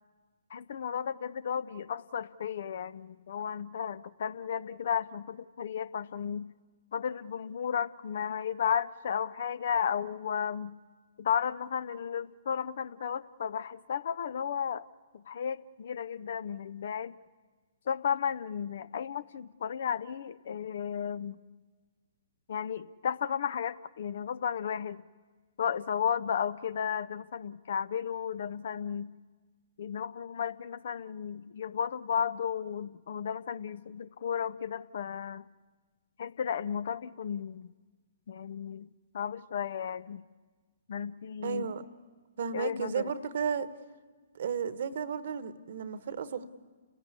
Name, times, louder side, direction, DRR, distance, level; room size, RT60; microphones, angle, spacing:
voice 1, 0.5-6.5 6.9-10.7 11.2-14.9 15.1-17.1 17.9-21.4 22.5-25.0 25.6-29.1 29.8-35.5 36.2-37.7 38.3-38.9 39.1-40.2 40.9-41.7 42.5-43.1, left 8 dB, 60° left, 0.6 m, -34 dB
voice 2, 41.4-41.8 42.4-43.7 44.3-46.5, right 6 dB, 60° right, 1.2 m, -33 dB
30.0 x 16.5 x 8.3 m
hypercardioid pair, 130°, 0 cm